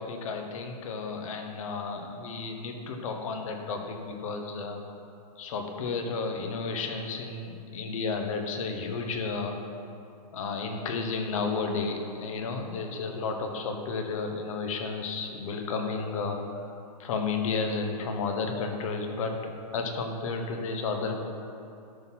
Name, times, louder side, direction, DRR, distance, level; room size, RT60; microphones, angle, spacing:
voice 1, 0.0-4.8 5.4-9.6 10.3-16.6 17.0-21.2, left 4 dB, 50° left, 4 dB, 1.2 m, -32 dB
12.0 x 4.2 x 5.8 m, 2.6 s
hypercardioid pair, 160°, 21 cm